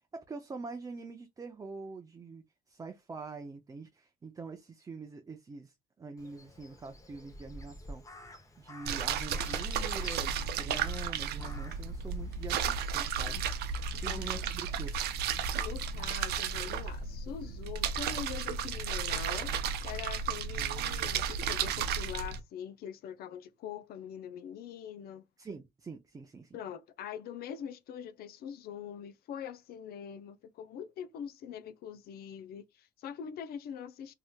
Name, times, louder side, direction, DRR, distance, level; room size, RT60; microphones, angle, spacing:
voice 1, 0.1-8.0 8.6-13.4 13.9-14.9 20.5-21.2 25.4-26.6, right 4 dB, 20° right, 0.5 m, -45 dB
Crow, 6.2-15.0, left 1 dB, 20° left, 0.8 m, -52 dB
sound 1, 8.9-22.4, right 6 dB, 75° right, 0.5 m, -33 dB
voice 2, 14.1-14.4 15.6-19.6 19.8-25.3 26.5-34.1, left 8 dB, 65° left, 0.5 m, -43 dB
3.1 x 2.8 x 2.2 m
cardioid pair, 110°, 17 cm